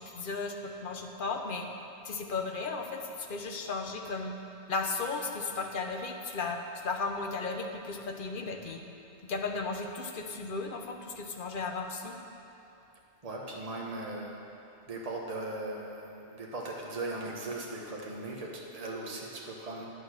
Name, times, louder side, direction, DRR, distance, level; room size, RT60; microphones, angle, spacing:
voice 1, 0.0-1.7 2.0-4.4 4.7-8.8 9.2-12.2, left 4 dB, 55° left, 3 dB, 0.9 m, -35 dB
voice 2, 13.2-14.4 14.9-19.8, right 2 dB, 35° right, -2 dB, 1.3 m, -38 dB
9.5 x 6.6 x 6.5 m, 2.9 s
omnidirectional pair, 1.1 m